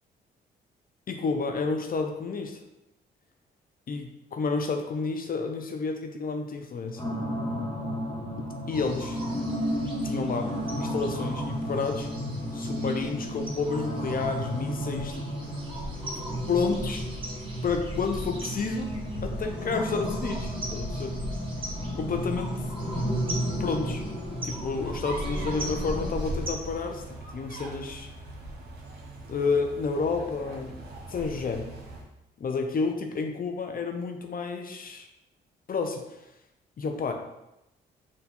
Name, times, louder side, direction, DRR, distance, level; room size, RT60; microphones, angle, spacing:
voice 1, 1.1-2.6 3.9-7.0 8.7-9.2 10.0-12.1 12.5-15.6 16.1-17.0 17.6-18.9 19.2-21.1 22.0-22.7 23.6-24.0 24.3-27.0 27.3-28.1 29.3-30.7 31.1-31.7 32.4-35.1 35.7-36.3 36.8-37.1, left 4 dB, 45° left, 4 dB, 0.7 m, -30 dB
sound 1, 7.0-26.1, equal, 20° left, 1.4 m, -33 dB
sound 2, 8.7-26.5, right 1 dB, 25° right, 1.3 m, -38 dB
sound 3, 24.8-32.1, right 2 dB, 55° right, 1.2 m, -42 dB
4.4 x 2.5 x 4.2 m, 0.91 s
supercardioid pair, 55°, 20 cm